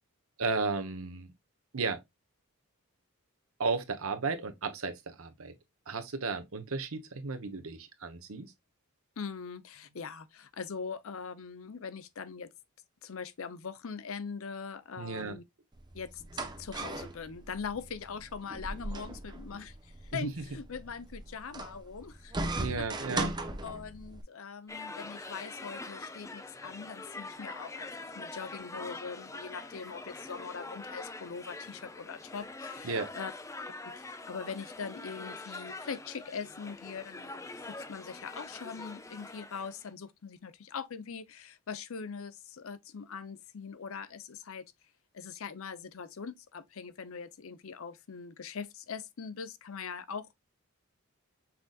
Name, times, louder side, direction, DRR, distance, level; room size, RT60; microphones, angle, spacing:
voice 1, 0.4-1.3 1.7-2.0 3.6-5.5 5.9-8.5 15.0-15.4 20.1-20.4 22.6-23.3 32.8-33.1, right 4 dB, 65° right, 1.0 m, -34 dB
voice 2, 9.2-12.5 13.0-15.4 15.9-16.2 16.6-22.6 23.0-23.1 23.6-33.3 34.0-44.6 45.1-50.3, left 5 dB, 65° left, 0.6 m, -42 dB
sound 1, 15.7-24.2, right 2 dB, 20° right, 0.7 m, -38 dB
sound 2, 24.7-39.9, left 3 dB, 15° left, 0.4 m, -44 dB
5.9 x 3.9 x 2.3 m
head